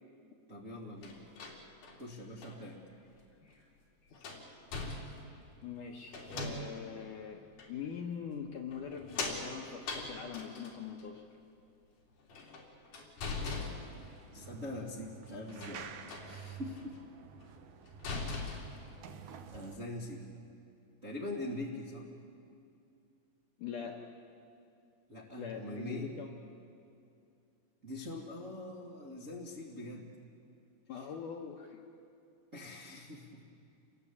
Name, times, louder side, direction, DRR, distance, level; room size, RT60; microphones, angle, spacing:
voice 1, 0.5-1.3 2.0-2.8 13.3-13.8 14.3-15.9 16.2-17.0 18.2-18.7 19.5-20.2 21.0-22.1 25.1-26.1 27.8-30.1 30.9-31.1 32.5-33.4, left 1 dB, 35° right, -3 dB, 1.2 m, -43 dB
sound 1, 1.0-2.6 3.5-3.6 4.1-5.4 6.1-6.9 7.6-7.7 8.7-11.0 12.2-14.3 15.5-16.4 16.7-17.0 17.4-17.5 17.9-18.9, left 3 dB, 50° left, 4.4 m, -41 dB
voice 2, 5.6-7.4 7.7-11.2 23.6-24.0 25.4-26.3 30.9-31.9, left 7 dB, 65° left, 1 dB, 2.1 m, -42 dB
sound 2, 13.4-19.8, right 7 dB, 85° right, 1.6 m, -50 dB
28.5 x 21.0 x 8.5 m, 2.6 s
omnidirectional pair, 5.2 m